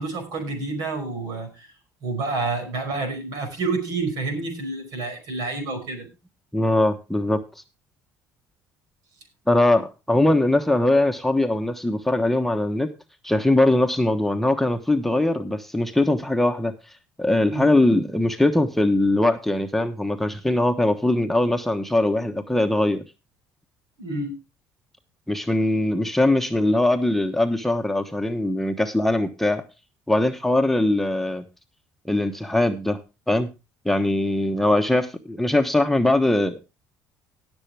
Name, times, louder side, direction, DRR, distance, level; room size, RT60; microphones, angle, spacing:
voice 1, 0.0-1.7 2.0-6.1 17.5-17.7 24.0-24.3, right 3 dB, 70° right, 6 dB, 5.0 m, -28 dB
voice 2, 6.5-7.4 9.5-12.9 13.2-16.7 17.2-23.0 25.3-29.6 30.1-31.4 32.0-33.0 33.3-33.5 33.8-36.6, left 1 dB, 5° left, 5 dB, 1.1 m, -21 dB
18.5 x 7.0 x 3.4 m, 0.27 s
supercardioid pair, 90°, 7 cm